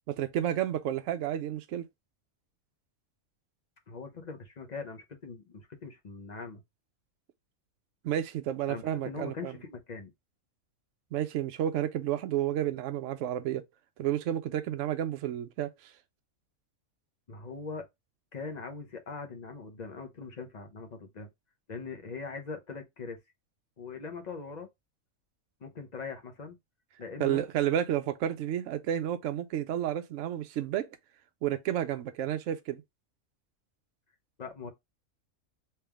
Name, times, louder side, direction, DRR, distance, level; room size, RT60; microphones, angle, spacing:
voice 1, 0.2-1.8 8.0-9.5 11.1-13.6 14.0-15.9 27.2-30.9 31.4-32.8, right 11 dB, 70° right, 0.9 m, -31 dB
voice 2, 3.9-6.6 8.7-10.1 17.3-17.9 18.3-21.3 21.7-23.2 23.8-24.7 25.6-26.6 27.0-27.4 34.4-34.7, left 4 dB, 40° left, 0.7 m, -41 dB
3.5 x 2.9 x 3.4 m
omnidirectional pair, 1.4 m